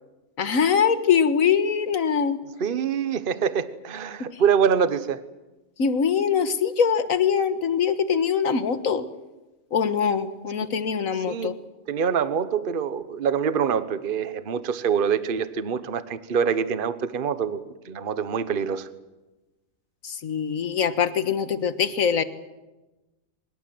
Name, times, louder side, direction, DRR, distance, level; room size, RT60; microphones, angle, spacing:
voice 1, 0.4-2.4 5.8-9.1 9.7-11.5 20.0-22.2, left 7 dB, 75° left, 11 dB, 1.7 m, -23 dB
voice 2, 2.6-5.2 11.3-11.6 11.9-18.9, right 7 dB, 45° right, 13 dB, 1.1 m, -25 dB
25.0 x 22.0 x 7.8 m, 1.1 s
omnidirectional pair, 1.4 m